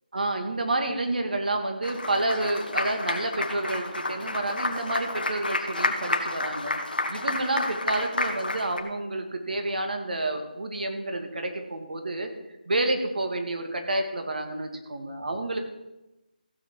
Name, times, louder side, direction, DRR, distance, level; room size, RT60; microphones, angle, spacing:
voice 1, 0.1-6.7 7.1-12.3 12.7-15.6, right 2 dB, 65° right, 5 dB, 2.2 m, -29 dB
Applause, 1.8-8.8, left 2 dB, 75° left, 1.7 m, -30 dB
15.0 x 5.8 x 6.4 m, 0.99 s
figure-of-eight pair, 160°, 5 cm